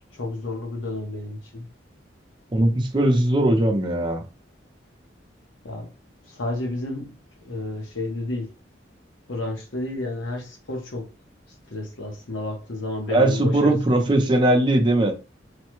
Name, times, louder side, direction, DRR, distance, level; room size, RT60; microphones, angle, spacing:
voice 1, 0.1-1.7 5.6-5.9 6.3-7.1 7.4-8.5 9.3-11.1 11.7-14.0, left 2 dB, 80° left, 1.1 m, -31 dB
voice 2, 2.5-4.2 13.1-15.1, right 1 dB, 25° right, 0.6 m, -19 dB
3.3 x 2.2 x 3.0 m
head